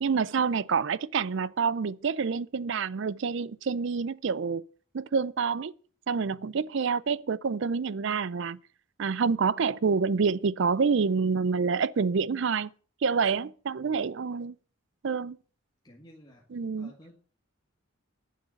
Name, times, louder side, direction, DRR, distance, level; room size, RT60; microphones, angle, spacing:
voice 1, 0.0-4.6 4.9-5.7 6.1-8.6 9.0-12.7 13.0-14.5 15.0-15.4 16.5-16.9, right 5 dB, 55° right, 0.4 m, -27 dB
voice 2, 15.8-16.4 16.8-17.1, equal, 20° left, 1.8 m, -53 dB
10.5 x 6.5 x 8.6 m
head